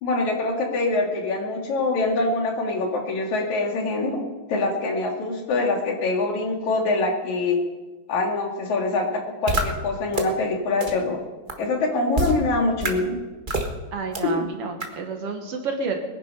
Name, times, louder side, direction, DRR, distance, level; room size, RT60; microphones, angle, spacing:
voice 1, 0.0-4.2 4.5-7.6 8.1-9.1 9.4-11.2 11.6-13.2 14.2-14.4, left 3 dB, 75° left, 2 dB, 3.5 m, -24 dB
sound 1, 9.5-9.6 10.1-10.2 10.8-10.9 11.5-11.6 12.1-12.3 12.8-12.9 13.5-13.7 14.1-14.2 14.8-14.9, right 2 dB, 30° right, 0.8 m, -24 dB
voice 2, 13.9-16.1, right 4 dB, 60° right, 4 dB, 2.2 m, -30 dB
22.0 x 9.9 x 5.5 m, 1.2 s
omnidirectional pair, 3.4 m